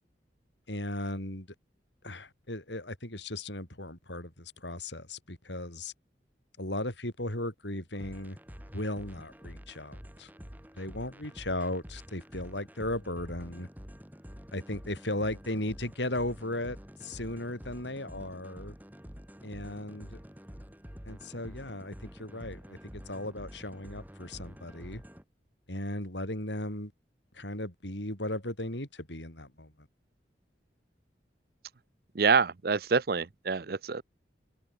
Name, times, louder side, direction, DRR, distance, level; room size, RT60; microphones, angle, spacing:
voice 1, 0.7-1.5 2.0-5.9 6.6-8.4 8.7-10.3 10.8-13.7 14.5-18.8 19.4-20.2 21.1-25.0 25.7-26.9 27.3-29.9, left 1 dB, 80° left, 8.0 m, -36 dB
sound 1, 7.9-25.2, equal, 10° right, 4.1 m, -48 dB
voice 2, 32.2-34.0, right 5 dB, 55° right, 0.6 m, -26 dB
head